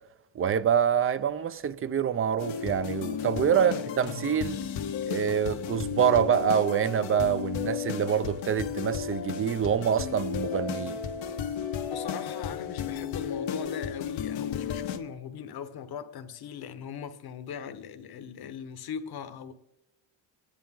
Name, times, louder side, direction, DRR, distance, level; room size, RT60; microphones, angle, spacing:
voice 1, 0.3-4.6 5.1-11.0, right 8 dB, 30° right, 0.5 m, -26 dB
sound 1, 2.4-15.0, left 8 dB, 80° left, 1.4 m, -33 dB
voice 2, 11.9-19.5, left 7 dB, 55° left, 1.2 m, -40 dB
28.5 x 10.5 x 3.8 m
cardioid pair, 135°, 45 cm